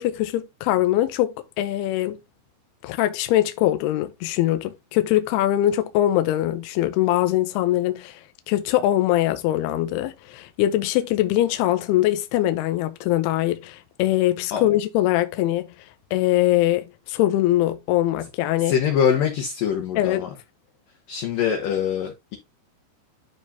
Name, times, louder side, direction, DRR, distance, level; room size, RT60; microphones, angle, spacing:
voice 1, 0.0-2.2 2.8-8.2 8.5-15.7 16.1-18.7 20.0-20.3, left 14 dB, 85° left, 2.4 m, -22 dB
voice 2, 18.6-20.3 21.1-22.4, left 8 dB, 65° left, 2.4 m, -23 dB
12.0 x 4.1 x 2.8 m
omnidirectional pair, 5.1 m